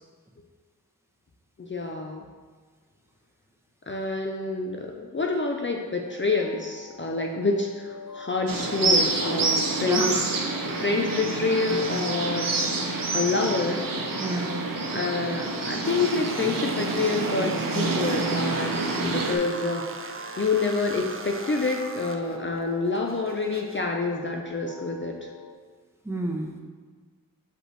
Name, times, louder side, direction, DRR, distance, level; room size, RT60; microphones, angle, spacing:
voice 1, 1.6-2.2 3.9-10.2 10.6-12.5 13.1-13.8 14.9-19.8 20.4-25.3, left 3 dB, 35° left, 1 dB, 0.5 m, -27 dB
sound 1, 6.0-25.5, left 3 dB, 75° left, 0.8 m, -45 dB
sound 2, 8.5-19.4, right 3 dB, 75° right, 0.8 m, -27 dB
voice 2, 9.9-10.2 14.2-14.5 19.0-19.2 26.0-26.6, right 1 dB, 10° right, 0 dB, 0.8 m, -31 dB
sound 3, 15.8-23.8, right 3 dB, 40° right, 0.5 m, -38 dB
6.1 x 5.3 x 3.2 m, 1.5 s
wide cardioid pair, 70°, 34 cm